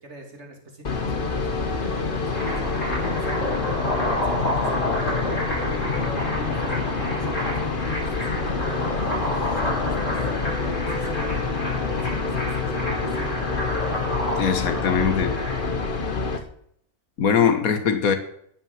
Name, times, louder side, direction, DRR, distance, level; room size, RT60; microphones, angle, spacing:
voice 1, 0.0-2.6 3.0-3.6 4.0-5.3 5.7-8.8 9.2-13.4, right 1 dB, 50° right, 3.4 m, -42 dB
sound 1, 0.8-16.4, left 4 dB, 40° left, 1.4 m, -27 dB
sound 2, 2.1-15.9, left 1 dB, 55° left, 7.0 m, -29 dB
voice 2, 14.4-15.4 17.2-18.2, left 7 dB, 75° left, 1.7 m, -21 dB
14.5 x 8.9 x 7.4 m
omnidirectional pair, 1.5 m